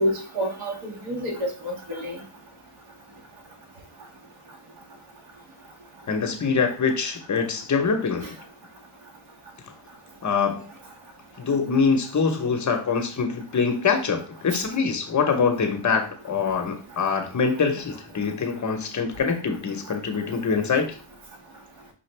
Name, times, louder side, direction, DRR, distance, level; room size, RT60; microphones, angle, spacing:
voice 1, 0.0-2.2 14.5-14.6, equal, 60° right, -1 dB, 1.8 m, -28 dB
voice 2, 6.1-8.3 10.2-10.7 11.4-20.9, left 5 dB, 35° left, 5 dB, 0.9 m, -24 dB
5.8 x 2.5 x 3.2 m, 0.39 s
cardioid pair, 80°, 48 cm